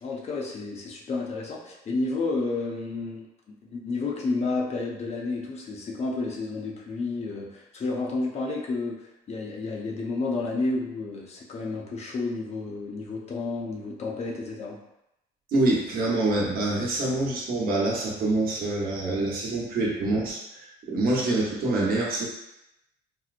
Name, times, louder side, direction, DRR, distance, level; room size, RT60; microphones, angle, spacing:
voice 1, 0.0-14.8, left 3 dB, 40° left, -2 dB, 0.6 m, -31 dB
voice 2, 15.5-22.3, right 2 dB, 60° right, -4 dB, 1.0 m, -26 dB
4.3 x 2.0 x 2.5 m, 0.88 s
cardioid pair, 110°, 17 cm